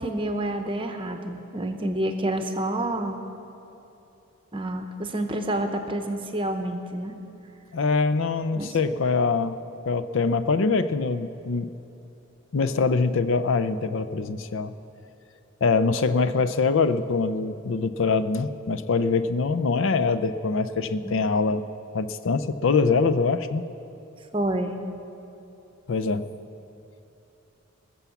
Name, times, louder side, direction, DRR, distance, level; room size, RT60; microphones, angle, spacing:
voice 1, 0.0-3.2 4.5-7.2 8.5-8.8 21.0-21.1 24.3-24.8, right 1 dB, 25° right, 6 dB, 0.9 m, -28 dB
voice 2, 7.7-9.6 9.9-11.7 12.5-14.7 15.6-21.6 21.9-23.6 25.9-26.3, left 4 dB, 60° left, 12 dB, 0.5 m, -24 dB
20.5 x 7.1 x 7.1 m, 3.0 s
head